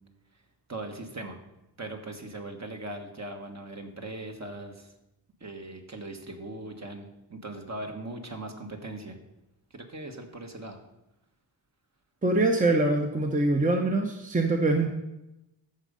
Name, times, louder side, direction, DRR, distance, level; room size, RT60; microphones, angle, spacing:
voice 1, 0.7-1.4 1.8-4.9 5.4-9.2 9.7-10.8, right 2 dB, 40° right, 4 dB, 1.5 m, -39 dB
voice 2, 12.2-14.9, right 2 dB, 20° right, 3 dB, 0.9 m, -24 dB
14.0 x 5.3 x 5.3 m, 0.92 s
wide cardioid pair, 90°, 44 cm